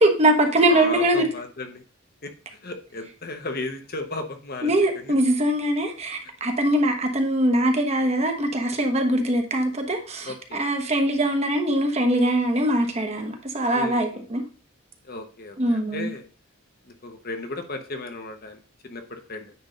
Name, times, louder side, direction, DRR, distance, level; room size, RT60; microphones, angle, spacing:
voice 1, 0.0-1.3 4.6-14.4 15.6-16.1, right 1 dB, 30° right, 4 dB, 1.1 m, -22 dB
voice 2, 0.7-1.8 2.2-2.3 2.6-4.7 5.0-5.1 10.2-10.6 13.7-14.2 15.0-16.2 17.0-19.5, left 2 dB, 45° left, 6 dB, 1.0 m, -34 dB
9.6 x 3.6 x 5.3 m, 0.38 s
head